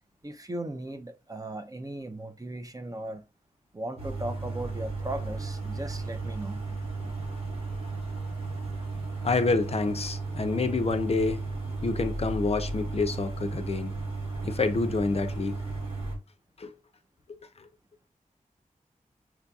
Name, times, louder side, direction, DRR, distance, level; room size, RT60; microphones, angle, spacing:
voice 1, 0.2-3.2 3.7-6.6, right 1 dB, 25° right, 0.5 m, -37 dB
sound 1, 4.0-16.2, right 3 dB, 45° right, 1.4 m, -34 dB
voice 2, 9.2-11.4 11.8-13.9 14.4-15.5 16.6-16.7 17.3-17.7, left 3 dB, 45° left, 0.4 m, -28 dB
5.8 x 2.7 x 2.3 m
wide cardioid pair, 95°, 14 cm